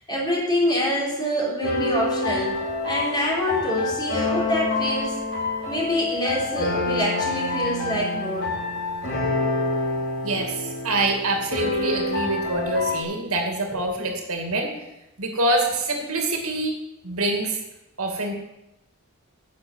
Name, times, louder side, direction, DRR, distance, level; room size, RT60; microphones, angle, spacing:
voice 1, 0.1-2.5 2.8-5.2 5.7-8.5 13.7-13.8, equal, 20° left, -4 dB, 3.8 m, -25 dB
sound 1, 1.6-13.0, left 3 dB, 55° left, 5.6 m, -27 dB
voice 2, 10.2-14.7 15.2-16.8 17.0-17.6 18.0-18.3, right 2 dB, 75° right, 2 dB, 2.4 m, -25 dB
10.0 x 7.2 x 8.0 m, 0.92 s
head